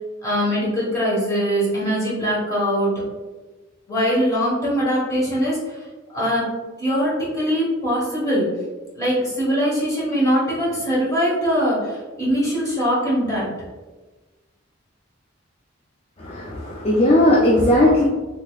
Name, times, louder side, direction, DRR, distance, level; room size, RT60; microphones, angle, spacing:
voice 1, 0.2-2.9 3.9-5.8 6.1-6.4 6.8-8.4 9.0-13.5, equal, 15° left, -7 dB, 1.4 m, -22 dB
voice 2, 16.2-18.0, left 1 dB, 30° left, -4 dB, 0.4 m, -17 dB
3.9 x 2.9 x 2.3 m, 1.2 s
head